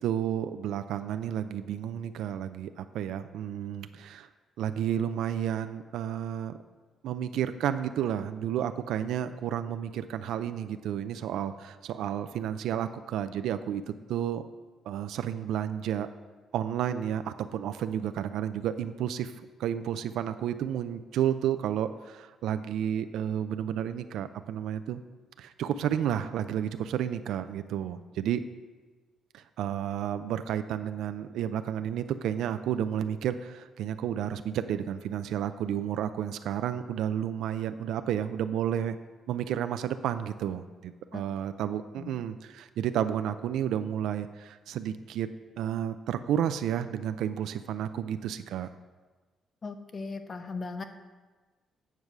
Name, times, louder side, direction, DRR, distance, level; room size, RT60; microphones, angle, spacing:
voice 1, 0.0-4.3 4.6-6.6 7.0-13.8 14.1-14.4 14.9-16.1 16.5-19.3 19.6-25.0 25.4-28.4 29.3-39.0 39.3-45.3 45.6-48.7, right 10 dB, 80° right, 10 dB, 0.4 m, -31 dB
voice 2, 49.6-50.8, left 4 dB, 40° left, 8 dB, 0.9 m, -38 dB
9.2 x 4.7 x 6.5 m, 1.3 s
cardioid pair, 90°, 0 cm